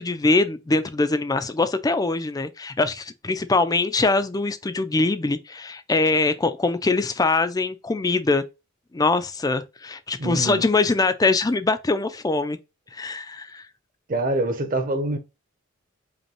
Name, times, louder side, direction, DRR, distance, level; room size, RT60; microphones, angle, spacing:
voice 1, 0.0-8.4 8.9-12.6 12.9-13.6, left 3 dB, 20° left, 0.4 m, -23 dB
voice 2, 10.2-10.6 14.1-15.2, right 1 dB, 40° right, 0.9 m, -25 dB
5.1 x 2.2 x 3.0 m
head